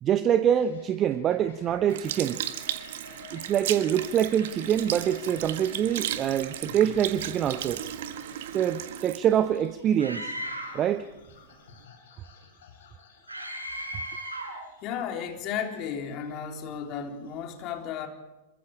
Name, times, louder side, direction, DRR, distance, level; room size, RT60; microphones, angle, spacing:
voice 1, 0.0-2.4 3.3-7.8 8.5-10.3 10.7-11.1, right 9 dB, 30° right, 11 dB, 0.9 m, -25 dB
sound 1, 0.5-17.5, left 6 dB, 60° left, 5.4 m, -53 dB
Sink (filling or washing) / Liquid, 1.9-10.5 11.1-11.2, right 11 dB, 55° right, 1.5 m, -36 dB
Screaming, 10.0-10.9 13.3-14.6, equal, 80° right, 6.0 m, -36 dB
voice 2, 14.8-18.1, left 8 dB, 40° left, 3 dB, 3.7 m, -34 dB
27.0 x 23.5 x 4.9 m, 1.0 s
figure-of-eight pair, 90°, 0 cm